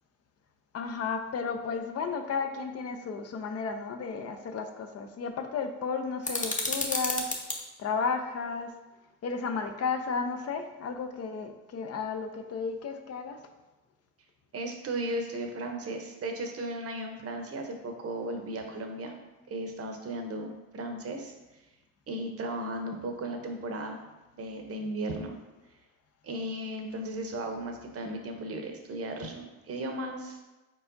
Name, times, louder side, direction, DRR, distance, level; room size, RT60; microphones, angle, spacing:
voice 1, 0.7-7.3 7.8-8.7 9.2-13.4, left 5 dB, 55° left, 6 dB, 0.6 m, -33 dB
sound 1, 6.2-7.6, left 2 dB, 25° left, 0.9 m, -31 dB
voice 2, 14.5-19.1 19.5-21.3 22.1-24.0 24.3-25.3 26.2-30.4, right 1 dB, 50° right, 4 dB, 0.8 m, -35 dB
4.7 x 4.4 x 2.6 m, 1.1 s
cardioid pair, 90°, 30 cm